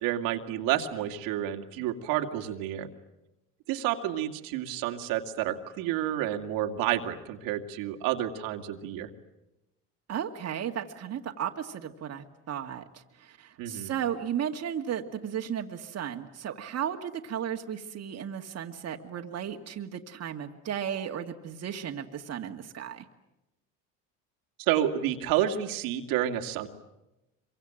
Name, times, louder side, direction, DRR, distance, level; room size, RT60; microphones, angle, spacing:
voice 1, 0.0-2.9 3.7-9.1 13.6-13.9 24.6-26.7, right 11 dB, 75° right, 4 dB, 2.5 m, -30 dB
voice 2, 10.1-23.0, right 9 dB, 45° right, 4 dB, 2.2 m, -35 dB
25.5 x 24.5 x 9.0 m, 0.95 s
supercardioid pair, 85°, 35 cm